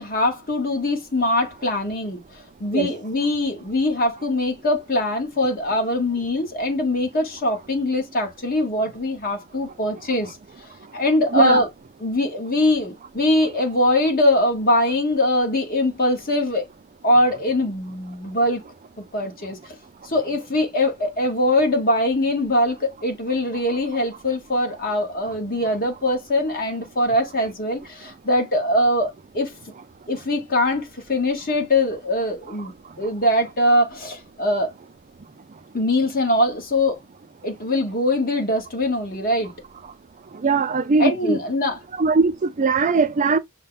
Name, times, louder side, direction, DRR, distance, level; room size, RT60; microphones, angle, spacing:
voice 1, 0.0-2.2 2.6-10.4 10.9-11.7 12.0-16.6 17.0-18.6 19.1-19.7 20.0-29.5 30.1-34.7 35.7-37.0 37.4-39.5 41.0-41.8, left 1 dB, 45° left, 1.4 m, -22 dB
voice 2, 11.3-11.6 40.4-41.4 42.0-43.4, right 4 dB, 35° right, 0.4 m, -20 dB
5.5 x 2.2 x 3.8 m
head